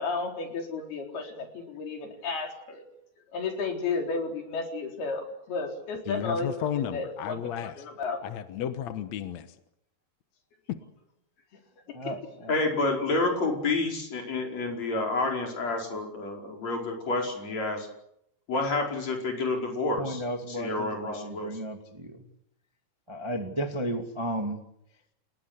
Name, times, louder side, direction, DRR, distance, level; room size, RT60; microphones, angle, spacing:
voice 1, 0.0-2.8 3.3-8.2, left 4 dB, 90° left, 6.0 m, -33 dB
voice 2, 6.1-7.8 8.2-9.5, left 10 dB, 65° left, 2.0 m, -33 dB
voice 3, 11.9-12.5 20.0-22.2 23.1-24.6, right 1 dB, 15° right, 1.2 m, -34 dB
voice 4, 12.5-17.9 18.5-20.2 20.5-21.5, left 3 dB, 45° left, 6.2 m, -29 dB
29.5 x 19.0 x 8.2 m
omnidirectional pair, 4.3 m